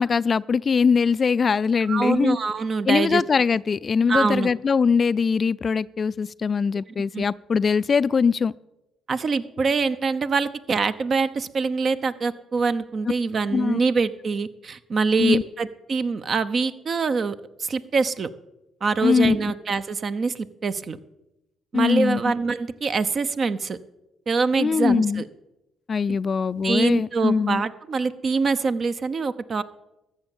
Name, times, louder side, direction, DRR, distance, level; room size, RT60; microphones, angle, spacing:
voice 1, 0.0-2.4 2.9-8.5 13.5-13.8 15.2-15.4 19.0-19.4 21.7-22.2 24.6-25.2 25.9-27.6, left 5 dB, 45° left, 18 dB, 0.3 m, -21 dB
voice 2, 1.9-3.2 4.1-4.5 7.1-7.3 9.1-17.3 17.6-18.3 18.8-21.0 21.7-23.8 24.3-25.3 26.1-26.2 26.6-29.6, right 4 dB, 50° right, 12 dB, 0.7 m, -24 dB
13.5 x 7.3 x 7.2 m, 0.94 s
supercardioid pair, 60°, 0 cm